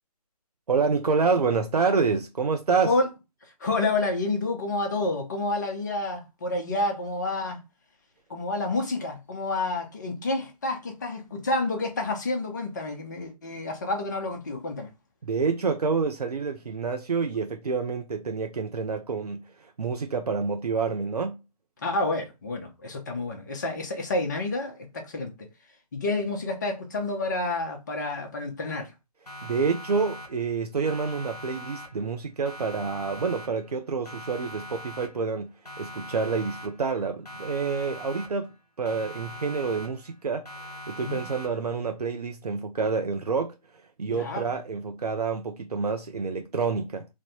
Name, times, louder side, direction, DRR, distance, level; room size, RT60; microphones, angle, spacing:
voice 1, 0.7-2.9 15.2-21.4 29.4-38.5 38.8-40.5 40.9-43.6 44.0-47.1, right 5 dB, 75° right, 0.4 m, -28 dB
voice 2, 3.6-7.6 8.3-14.9 21.8-25.3 25.9-28.9 41.0-41.3 44.1-44.5, left 2 dB, 30° left, 0.6 m, -29 dB
Siren, 29.3-30.6 30.9-32.2 32.5-33.8 34.1-35.4 35.7-37.0 37.3-38.6 38.9-40.2 40.5-41.8, equal, 75° left, 1.1 m, -42 dB
3.2 x 2.1 x 2.7 m
figure-of-eight pair, 145°, 20 cm